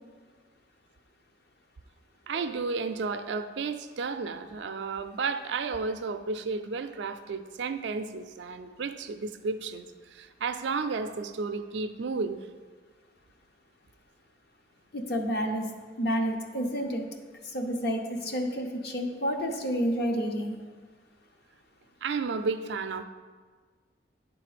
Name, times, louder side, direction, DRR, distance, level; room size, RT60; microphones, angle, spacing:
voice 1, 2.3-9.9 10.1-12.4 22.0-23.0, right 4 dB, 75° right, 9 dB, 0.4 m, -32 dB
voice 2, 14.9-15.7 16.0-17.0 17.4-20.6, equal, 60° left, 3 dB, 0.8 m, -29 dB
10.0 x 3.7 x 5.0 m, 1.5 s
head